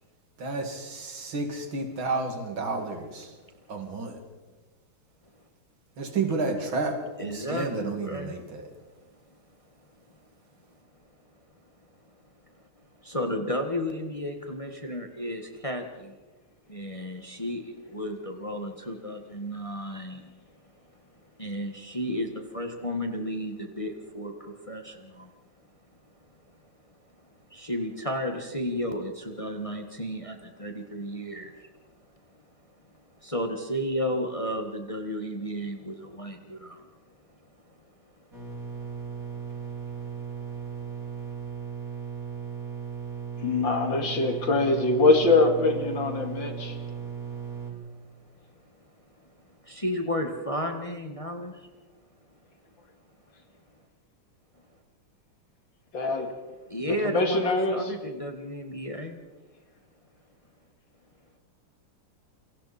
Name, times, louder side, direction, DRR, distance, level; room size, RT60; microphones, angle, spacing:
voice 1, 0.4-3.3 3.7-4.2 6.0-8.7, right 3 dB, 65° right, 4 dB, 3.2 m, -31 dB
voice 2, 7.2-8.3 13.0-16.1 16.7-20.3 21.3-25.4 27.5-31.7 33.2-36.9 38.4-38.5 38.8-38.9 47.1-47.2 47.9-48.0 49.2-51.7 56.7-59.2, equal, 15° left, 4 dB, 1.6 m, -33 dB
sound 1, 38.3-47.7, right 6 dB, 40° right, 6.5 m, -37 dB
voice 3, 43.4-46.8 55.9-56.3 56.9-57.8, left 3 dB, 60° left, 5 dB, 2.8 m, -23 dB
28.0 x 24.0 x 4.3 m, 1.2 s
omnidirectional pair, 2.3 m